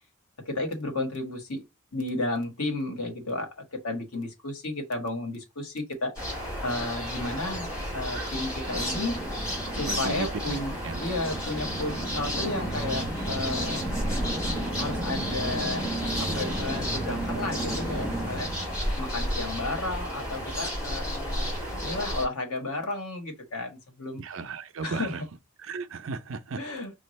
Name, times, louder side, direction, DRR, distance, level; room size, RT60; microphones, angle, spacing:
voice 1, 0.5-1.6 1.9-6.1 6.6-9.2 9.8-10.7 11.0-13.8 14.8-15.8 16.2-18.5 19.0-21.5 21.8-24.2 24.8-25.1 26.6-26.9, left 2 dB, 85° left, 1.3 m, -33 dB
sound 1, 6.2-22.3, equal, 15° left, 2.8 m, -32 dB
sound 2, 8.7-19.7, right 1 dB, ahead, 1.0 m, -35 dB
voice 2, 9.7-10.6 10.8-11.0 24.2-25.2 25.6-26.6, right 4 dB, 60° right, 0.5 m, -35 dB
5.2 x 2.4 x 3.1 m
head